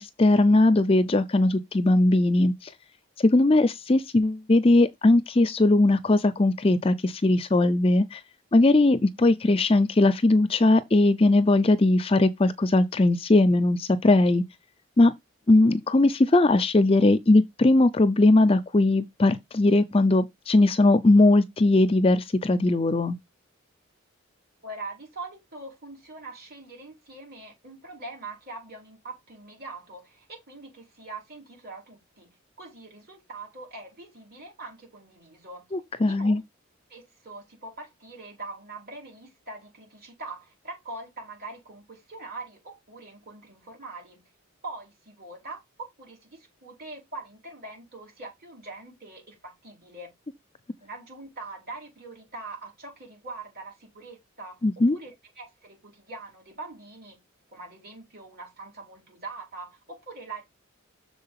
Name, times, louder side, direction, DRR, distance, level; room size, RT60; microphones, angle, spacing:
voice 1, 0.0-2.7 3.2-8.2 8.5-14.4 15.0-15.1 15.5-23.2 35.7-36.4 54.6-55.0, left 2 dB, 25° left, 0.4 m, -20 dB
voice 2, 24.6-35.6 36.1-36.4 36.9-44.3 44.6-45.6 46.0-50.1 50.8-57.2 57.5-60.4, right 3 dB, 45° right, 4.8 m, -42 dB
6.6 x 4.3 x 5.6 m
head